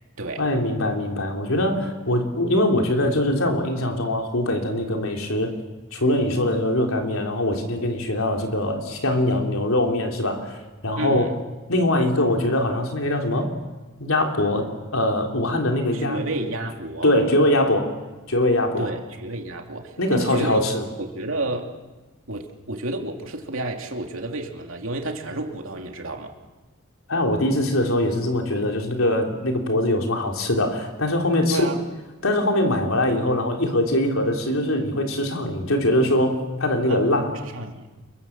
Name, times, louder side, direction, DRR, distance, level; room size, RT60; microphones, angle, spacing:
voice 1, 0.4-5.6 5.9-10.6 10.8-11.3 11.7-13.5 14.0-16.2 17.0-17.9 18.3-18.9 20.0-20.8 27.1-31.7 32.2-37.3, left 1 dB, 85° left, 2 dB, 3.7 m, -22 dB
voice 2, 11.0-11.3 15.9-17.1 18.8-20.6 21.0-21.7 22.3-26.3 31.5-31.8 36.6-37.9, right 2 dB, 70° right, 3 dB, 2.8 m, -31 dB
28.5 x 22.5 x 7.4 m, 1.2 s
head